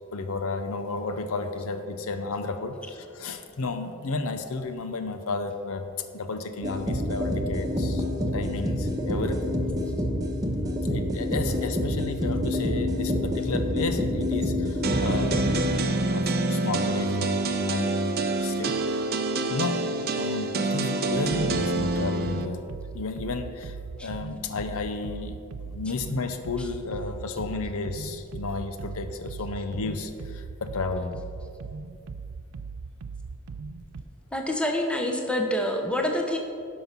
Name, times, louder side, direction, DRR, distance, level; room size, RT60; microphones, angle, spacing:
voice 1, 0.1-8.0 8.3-9.6 10.6-15.4 16.1-18.1 18.4-18.8 19.5-19.9 20.2-22.6 22.9-25.4 25.6-31.1, left 3 dB, 65° left, 8 dB, 0.7 m, -32 dB
sound 1, 6.6-16.1, left 1 dB, 15° right, 1.1 m, -27 dB
sound 2, 14.8-22.4, right 2 dB, 45° right, 0.7 m, -27 dB
sound 3, 21.1-34.0, right 4 dB, 85° right, 0.5 m, -39 dB
voice 2, 34.3-36.4, left 1 dB, 5° left, 2 dB, 0.8 m, -26 dB
11.0 x 5.6 x 5.9 m, 2.4 s
head